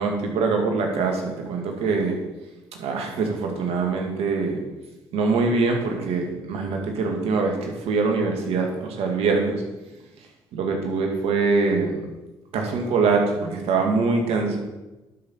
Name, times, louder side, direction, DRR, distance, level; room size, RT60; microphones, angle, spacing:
voice 1, 0.0-2.2 2.8-4.6 5.1-9.6 10.5-12.0 12.5-14.6, right 4 dB, 75° right, 2 dB, 1.8 m, -23 dB
11.5 x 5.5 x 4.3 m, 1.1 s
hypercardioid pair, 55°, 11 cm